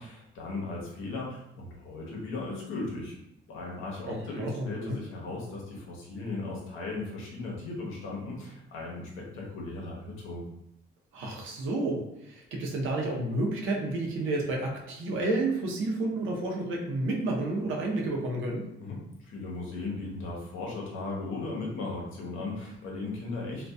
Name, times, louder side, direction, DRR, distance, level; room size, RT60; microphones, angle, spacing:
voice 1, 0.0-3.1 3.5-10.5 18.8-23.7, left 3 dB, 90° left, -2 dB, 0.8 m, -37 dB
voice 2, 4.1-5.0 11.1-18.6, right 2 dB, 80° right, -1 dB, 0.7 m, -30 dB
2.6 x 2.2 x 2.2 m, 0.80 s
cardioid pair, 90°, 20 cm